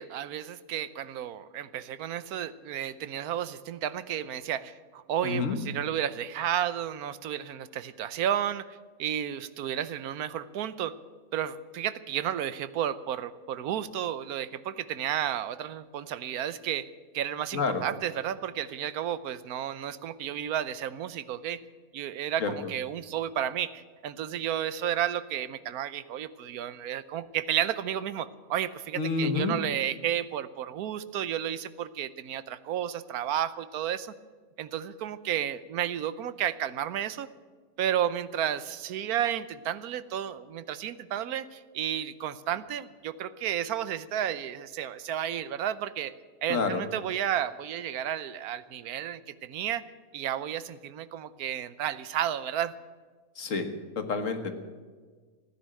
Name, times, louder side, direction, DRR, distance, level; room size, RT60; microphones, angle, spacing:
voice 1, 0.0-10.9 11.3-21.6 21.9-34.1 34.6-37.3 37.8-46.1 46.4-49.8 50.1-52.7, right 10 dB, 90° right, 15 dB, 1.2 m, -32 dB
voice 2, 5.2-5.6 17.5-17.8 22.4-22.5 29.0-29.5 46.5-46.8 53.4-53.7 54.0-54.5, left 4 dB, 60° left, 7 dB, 1.8 m, -28 dB
16.0 x 10.0 x 8.9 m, 1.5 s
omnidirectional pair, 1.5 m